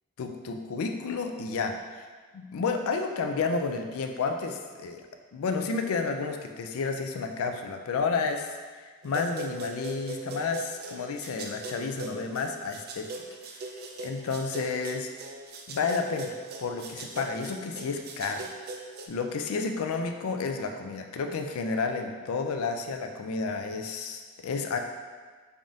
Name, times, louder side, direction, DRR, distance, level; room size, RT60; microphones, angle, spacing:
voice 1, 0.2-2.1 2.3-5.1 5.3-8.5 8.8-13.1 14.0-15.1 15.7-18.5 19.1-24.8, left 4 dB, 70° left, 4 dB, 0.4 m, -31 dB
sound 1, 9.0-19.1, right 2 dB, 45° right, 0.3 m, -40 dB
3.6 x 3.4 x 2.6 m, 1.5 s
head